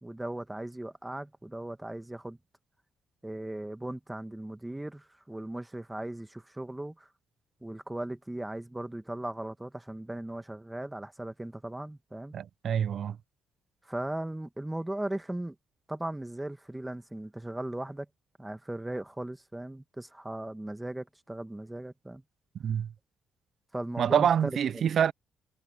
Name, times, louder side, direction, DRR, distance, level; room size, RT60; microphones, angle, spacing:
voice 1, 0.0-2.4 3.2-7.1 7.6-12.4 13.8-15.5 15.9-18.1 18.4-22.2 23.7-24.9, right 1 dB, 10° right, 1.7 m, -38 dB
voice 2, 12.3-13.2 22.6-22.9 24.0-25.1, right 8 dB, 60° right, 0.4 m, -26 dB
cardioid pair, 90°, 0 cm